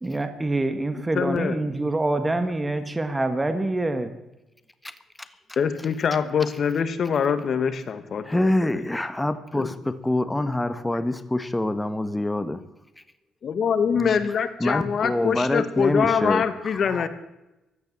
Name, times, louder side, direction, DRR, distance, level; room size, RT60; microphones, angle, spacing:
voice 1, 0.0-4.1 13.9-14.2, right 2 dB, 15° right, 9 dB, 1.7 m, -26 dB
voice 2, 1.2-1.6 5.6-8.8 9.6-9.7 13.4-17.1, left 6 dB, 55° left, 11 dB, 1.9 m, -24 dB
voice 3, 8.2-12.6 14.6-16.4 16.9-17.1, left 1 dB, 10° left, 11 dB, 1.4 m, -25 dB
16.0 x 11.5 x 7.6 m, 0.95 s
cardioid pair, 90°, 0 cm